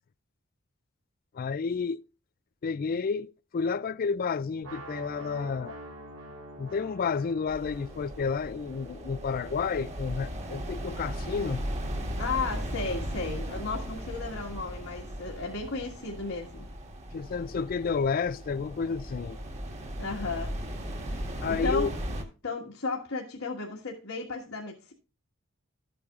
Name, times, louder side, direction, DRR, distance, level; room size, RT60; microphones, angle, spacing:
voice 1, 1.3-2.0 2.6-5.8 6.6-11.7 17.1-19.4 21.4-21.9, left 5 dB, 45° left, 0.4 m, -31 dB
sound 1, 4.6-10.5, right 1 dB, 80° right, 3.4 m, -47 dB
sound 2, 7.5-22.2, equal, 35° right, 1.8 m, -37 dB
voice 2, 12.2-16.7 20.0-20.5 21.3-21.9 22.4-24.9, left 4 dB, 75° left, 1.7 m, -34 dB
13.5 x 8.5 x 2.4 m
head